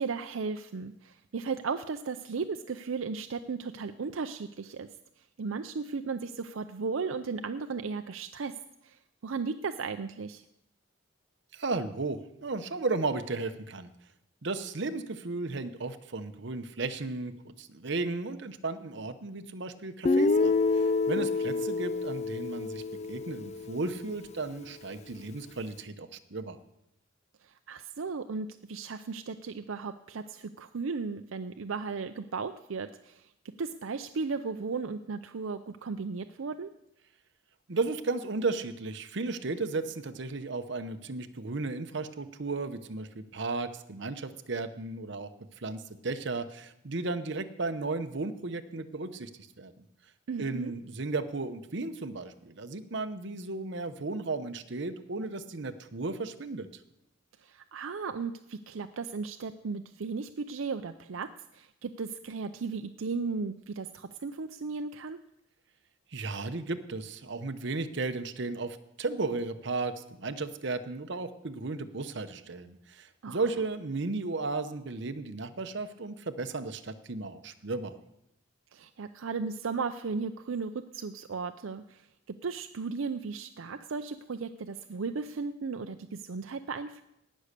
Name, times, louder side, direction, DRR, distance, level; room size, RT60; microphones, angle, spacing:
voice 1, 0.0-4.9 5.4-8.5 8.8-9.0 9.2-10.4 21.2-21.6 27.7-33.2 33.6-36.7 50.3-50.7 57.4-61.3 61.5-65.2 73.2-73.4 78.7-82.0 82.4-87.0, right 4 dB, 80° right, 8 dB, 0.5 m, -35 dB
voice 2, 11.5-13.9 14.4-22.8 23.1-26.6 37.7-45.3 45.6-49.3 49.6-49.7 50.4-56.7 66.1-77.9, right 3 dB, 60° right, 9 dB, 0.9 m, -34 dB
Guitar, 20.0-24.0, left 3 dB, 35° left, 0.4 m, -28 dB
18.0 x 6.4 x 6.7 m, 0.82 s
head